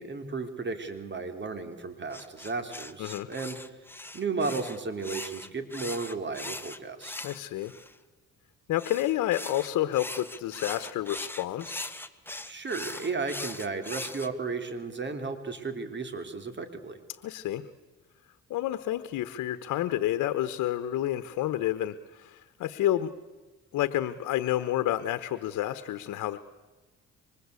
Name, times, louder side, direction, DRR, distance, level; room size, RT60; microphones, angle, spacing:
voice 1, 0.0-3.6 4.1-7.2 12.4-17.0, right 4 dB, 35° right, 8 dB, 3.7 m, -34 dB
sound 1, 2.1-7.9 8.8-14.3, left 2 dB, 5° left, 1.6 m, -40 dB
voice 2, 3.0-3.3 7.2-7.7 8.7-11.9 17.2-17.7 18.5-23.1 23.7-26.4, left 13 dB, 85° left, 12 dB, 1.1 m, -29 dB
27.5 x 25.0 x 8.4 m, 1.3 s
cardioid pair, 90°, 30 cm